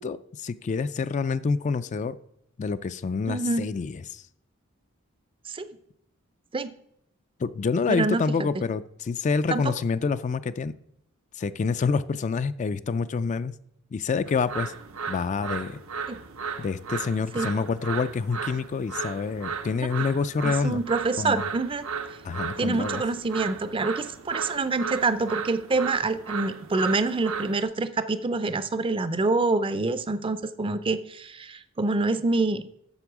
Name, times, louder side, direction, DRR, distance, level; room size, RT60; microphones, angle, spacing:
voice 1, 0.0-2.2 2.6-4.2 7.4-10.7 11.4-13.5 13.9-14.7 15.1-15.8 16.6-20.8 21.2-21.5 22.2-23.0, left 5 dB, 35° left, 14 dB, 0.3 m, -27 dB
voice 2, 3.3-3.6 5.5-5.7 6.5-6.7 7.9-8.5 9.5-9.7 16.1-16.2 17.3-17.5 20.4-21.9 22.6-32.7, right 3 dB, 25° right, 13 dB, 0.5 m, -26 dB
sound 1, 14.3-27.6, right 6 dB, 75° right, 0.8 m, -35 dB
8.1 x 6.9 x 6.0 m, 0.74 s
head